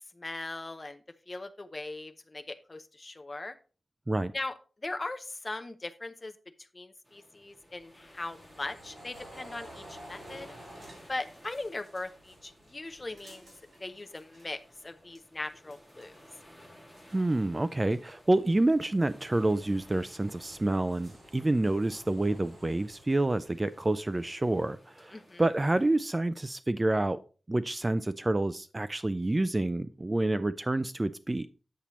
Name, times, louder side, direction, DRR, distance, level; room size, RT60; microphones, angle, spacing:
voice 1, 0.1-3.6 4.3-6.3 6.7-10.5 11.1-13.5 13.8-16.1 25.1-25.5, left 2 dB, 30° left, 8 dB, 0.7 m, -39 dB
sound 1, 7.0-26.1, equal, 5° right, 2.1 m, -58 dB
sound 2, 7.5-14.6 14.8-16.4 16.8-23.9, right 1 dB, 60° right, 4.5 m, -53 dB
voice 2, 17.1-27.2 27.5-31.5, right 2 dB, 20° right, 13 dB, 0.3 m, -28 dB
8.4 x 7.1 x 3.0 m, 0.36 s
wide cardioid pair, 135°, 0 cm